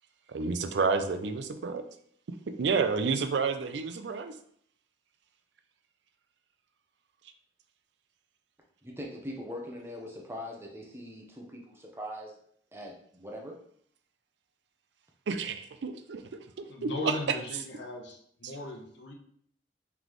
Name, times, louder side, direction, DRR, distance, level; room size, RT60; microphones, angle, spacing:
voice 1, 0.3-1.9 2.6-4.3 15.3-17.1, right 4 dB, 85° right, 8 dB, 0.4 m, -30 dB
voice 2, 8.8-12.3 12.7-13.5, equal, 15° right, 0 dB, 0.7 m, -41 dB
voice 3, 16.7-19.1, left 2 dB, 85° left, 2 dB, 0.8 m, -39 dB
4.0 x 3.4 x 3.1 m, 0.63 s
head